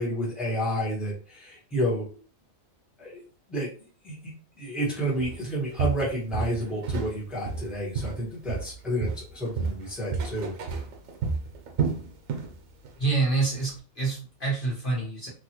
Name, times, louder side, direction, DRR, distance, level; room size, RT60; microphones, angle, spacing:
voice 1, 0.0-2.2 3.0-3.2 3.5-3.7 4.0-10.5, equal, ahead, -6 dB, 1.0 m, -30 dB
Walk footsteps, 5.2-5.4 5.8-7.2 7.5-8.8 9.0-12.5 12.8-13.1 13.6-13.7, right 5 dB, 80° right, 1.0 m, -30 dB
voice 2, 13.0-15.3, right 3 dB, 45° left, -4 dB, 1.2 m, -27 dB
3.0 x 2.3 x 2.9 m, 0.39 s
omnidirectional pair, 1.4 m